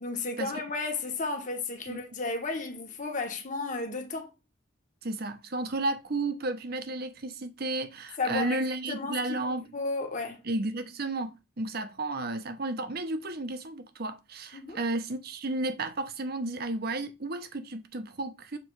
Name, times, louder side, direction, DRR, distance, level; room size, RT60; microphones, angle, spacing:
voice 1, 0.0-4.3 8.2-10.5 14.5-14.8, left 3 dB, 45° left, 1.3 m, -33 dB
voice 2, 5.0-9.6 10.5-18.6, right 2 dB, 55° right, 0.9 m, -33 dB
6.9 x 3.2 x 4.6 m
head